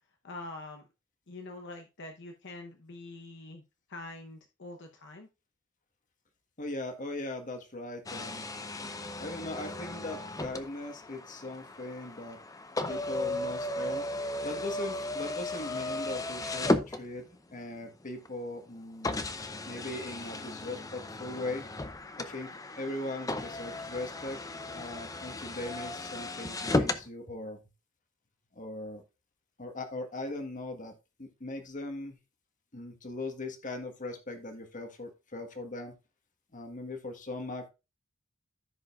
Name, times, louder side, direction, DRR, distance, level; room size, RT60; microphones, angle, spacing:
voice 1, 0.2-0.8 1.3-3.6 3.9-5.3, left 2 dB, 60° left, 3 dB, 0.9 m, -44 dB
voice 2, 6.6-8.5 9.2-12.4 12.9-14.1 14.4-17.3 17.5-19.3 19.6-21.7 22.2-24.4 24.7-27.6 28.5-29.0 29.6-32.2 32.7-36.0 36.5-37.7, left 2 dB, 40° left, 6 dB, 1.5 m, -39 dB
sound 1, 8.1-17.5 18.3-18.4 19.0-27.1, left 2 dB, 15° left, 0.6 m, -35 dB
14.5 x 5.1 x 2.5 m, 0.28 s
head